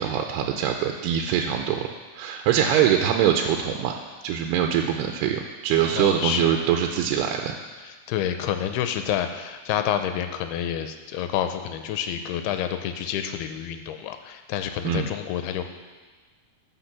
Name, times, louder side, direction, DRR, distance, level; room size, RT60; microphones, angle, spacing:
voice 1, 0.0-1.9 2.1-4.0 4.2-7.6 14.8-15.1, right 9 dB, 85° right, 3 dB, 2.7 m, -23 dB
voice 2, 5.9-6.5 7.8-15.6, left 10 dB, 85° left, 7 dB, 2.6 m, -28 dB
14.0 x 6.0 x 6.0 m, 1.4 s
omnidirectional pair, 4.6 m